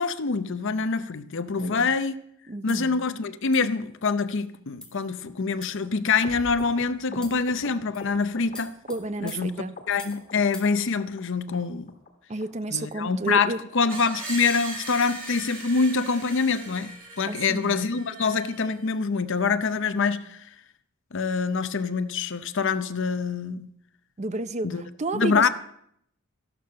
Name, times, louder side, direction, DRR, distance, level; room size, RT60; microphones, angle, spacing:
voice 1, 0.0-2.2 2.6-8.7 9.2-9.5 9.9-12.0 12.7-16.9 17.2-20.5 21.1-23.7 24.6-24.8 25.1-25.5, left 5 dB, 55° left, 0.7 m, -25 dB
voice 2, 1.6-1.9 2.5-3.0 7.1-7.3 8.9-9.8 12.3-13.6 17.3-17.9 24.2-25.5, right 2 dB, 30° right, 0.5 m, -31 dB
sound 1, 2.7-2.9 3.5-3.8 4.4-4.5 4.8-5.0 5.6-6.0 6.6-6.7 7.2-7.5 7.9-8.2 8.6-10.3 10.5-10.7, left 2 dB, 5° left, 2.1 m, -46 dB
sound 2, 6.2-9.5 9.8-10.3 10.6-11.2 11.5-11.6 11.9-12.1 12.4-12.5 12.8-13.0 13.3-13.4 13.6-13.9 14.2-14.3 14.5-14.7 15.1-15.2 15.4-15.6 15.9-16.0, left 2 dB, 35° left, 1.9 m, -43 dB
Screech, 13.9-18.9, right 2 dB, 65° right, 6.7 m, -39 dB
13.5 x 12.0 x 6.7 m
head